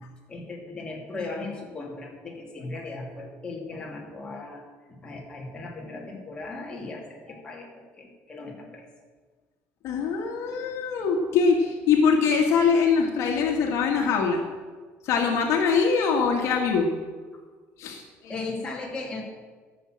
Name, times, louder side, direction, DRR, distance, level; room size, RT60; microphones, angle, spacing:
voice 1, 0.3-4.6 5.0-8.8 17.3-17.4 18.3-19.2, left 3 dB, 15° left, -2 dB, 2.8 m, -37 dB
voice 2, 9.8-14.4 15.0-16.9 17.8-18.3, left 5 dB, 60° left, 2 dB, 1.8 m, -23 dB
15.0 x 7.2 x 7.6 m, 1.4 s
cardioid pair, 150°, 6 cm